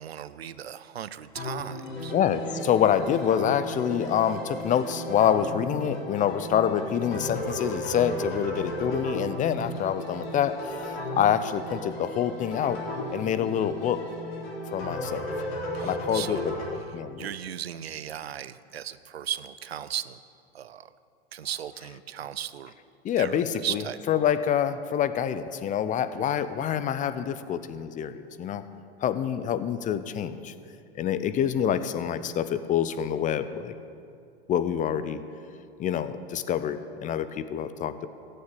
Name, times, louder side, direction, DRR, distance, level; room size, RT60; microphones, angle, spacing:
voice 1, 0.0-2.1 15.7-16.5 17.2-20.2 20.5-20.9 21.3-22.7 23.2-24.3, right 10 dB, 85° right, 14 dB, 0.6 m, -36 dB
sound 1, 1.4-16.7, left 1 dB, 40° left, 3.6 m, -35 dB
voice 2, 2.1-12.8 13.1-14.0 14.7-15.3 15.8-17.3 23.0-28.6 29.0-30.5 30.9-33.7 34.5-35.2 35.8-38.1, left 9 dB, 25° left, 13 dB, 0.6 m, -27 dB
14.5 x 6.7 x 8.5 m, 2.4 s
hypercardioid pair, 95°, 30 cm